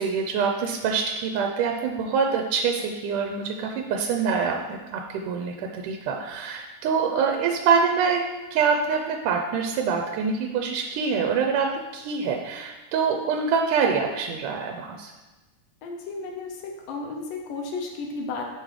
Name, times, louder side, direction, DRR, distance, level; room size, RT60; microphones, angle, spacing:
voice 1, 0.0-8.2 8.5-15.1, right 5 dB, 85° right, 2 dB, 2.1 m, -25 dB
voice 2, 15.8-18.5, left 3 dB, 90° left, 1 dB, 2.6 m, -33 dB
10.5 x 5.9 x 3.2 m, 1.1 s
omnidirectional pair, 3.8 m